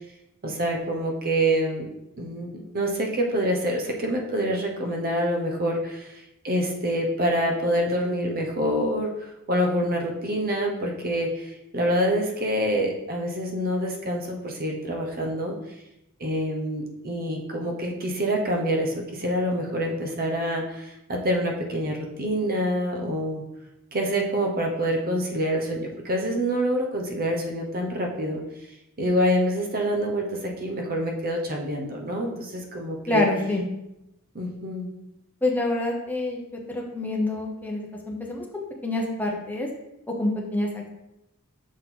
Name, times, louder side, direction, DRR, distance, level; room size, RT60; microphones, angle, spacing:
voice 1, 0.4-1.9 2.2-9.1 9.5-15.6 16.2-23.4 23.9-28.4 29.0-33.3 34.3-34.9, equal, 45° right, 1 dB, 1.0 m, -26 dB
voice 2, 33.1-33.6 35.4-39.7 40.1-40.9, left 2 dB, 10° left, -1 dB, 1.0 m, -27 dB
6.2 x 4.4 x 3.8 m, 0.87 s
head